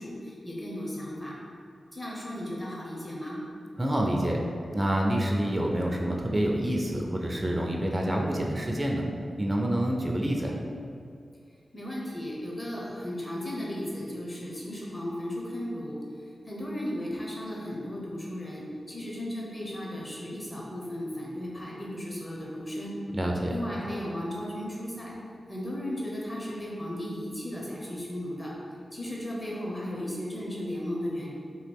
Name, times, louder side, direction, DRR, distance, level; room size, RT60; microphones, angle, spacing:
voice 1, 0.0-1.3 1.9-3.4 11.7-16.0 16.5-22.9 23.5-25.1 25.5-28.5 28.9-31.3, left 1 dB, 25° left, -4 dB, 0.8 m, -35 dB
voice 2, 3.8-4.4 4.7-9.0 9.4-10.6 23.1-23.5, right 1 dB, 25° right, -1 dB, 0.4 m, -27 dB
2.9 x 2.3 x 3.5 m, 2.4 s
cardioid pair, 55°, 0 cm